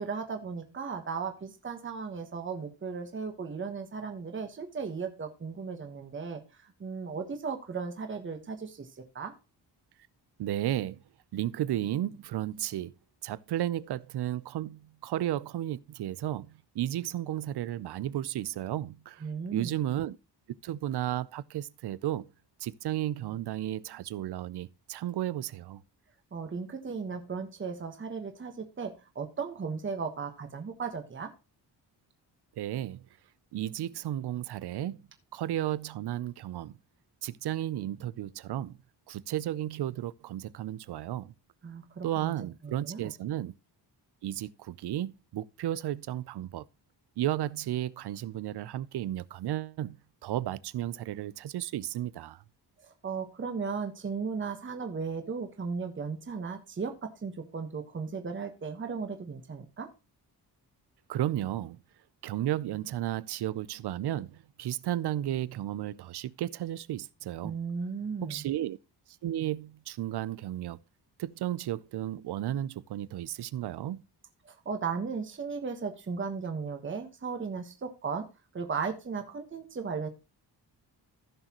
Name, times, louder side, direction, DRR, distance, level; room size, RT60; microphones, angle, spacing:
voice 1, 0.0-6.4 6.8-9.3 19.2-19.8 26.3-31.3 41.6-42.3 42.6-43.1 53.0-59.9 67.4-68.4 74.4-78.2 78.5-80.1, right 5 dB, 30° right, 1.3 m, -36 dB
voice 2, 10.4-11.0 11.3-12.9 13.2-19.2 19.5-20.2 20.6-22.3 22.6-25.8 32.6-33.0 33.5-35.0 35.3-36.8 37.2-38.8 39.1-41.3 42.0-43.5 44.2-46.6 47.2-50.0 50.2-52.4 61.1-61.8 62.2-67.6 68.2-68.8 69.2-70.8 71.2-74.0, right 12 dB, 70° right, 0.6 m, -33 dB
15.0 x 6.5 x 3.0 m
wide cardioid pair, 170°, 42 cm